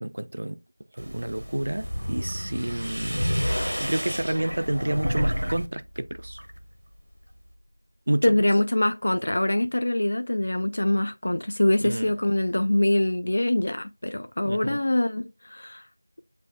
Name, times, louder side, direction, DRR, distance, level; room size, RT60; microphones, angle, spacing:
voice 1, 0.0-0.6 0.9-6.4 8.1-8.3 11.8-12.1 14.4-14.8, right 1 dB, 45° right, 0.4 m, -30 dB
sound 1, 1.0-5.7 6.0-6.6, equal, 80° right, 0.9 m, -32 dB
sound 2, 1.8-7.1, equal, 65° left, 0.8 m, -32 dB
voice 2, 8.2-15.8, left 1 dB, 45° left, 0.4 m, -24 dB
7.5 x 3.1 x 2.3 m
figure-of-eight pair, 175°, 0 cm